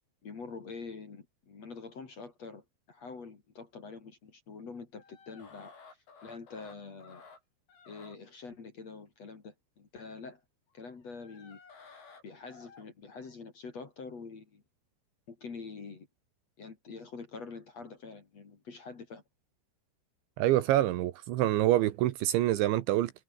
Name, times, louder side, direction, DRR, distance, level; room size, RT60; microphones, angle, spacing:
voice 1, 0.2-5.7 6.2-7.2 7.9-10.4 10.7-11.6 12.2-14.6 15.3-16.1 16.6-19.2, left 4 dB, 35° left, 3.6 m, -45 dB
sound 1, 5.0-7.4 7.7-8.2 10.8-13.3, left 5 dB, 70° left, 10.5 m, -54 dB
voice 2, 20.4-23.1, right 14 dB, 75° right, 3.2 m, -26 dB
omnidirectional pair, 5.9 m